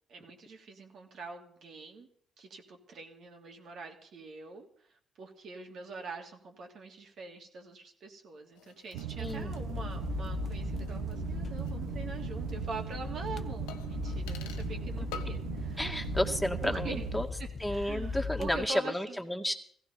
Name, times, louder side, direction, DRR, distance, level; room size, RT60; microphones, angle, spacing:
voice 1, 0.1-2.1 2.4-4.7 5.2-16.1 16.6-17.1 17.4-19.2, right 3 dB, 65° right, 3 dB, 2.8 m, -44 dB
sound 1, 8.5-11.9 12.1-12.2 13.7-14.8 15.1-15.5 15.8-16.4 16.7-16.8, left 8 dB, 90° left, 1.0 m, -50 dB
sound 2, 8.9-17.2, right 9 dB, 90° right, 1.1 m, -39 dB
voice 2, 9.2-9.6 15.8-17.3 17.6-19.5, left 1 dB, ahead, 2 dB, 2.3 m, -32 dB
sound 3, 9.3-18.7, left 5 dB, 45° left, 0.9 m, -39 dB
16.5 x 15.0 x 5.3 m, 0.63 s
supercardioid pair, 60°, 0 cm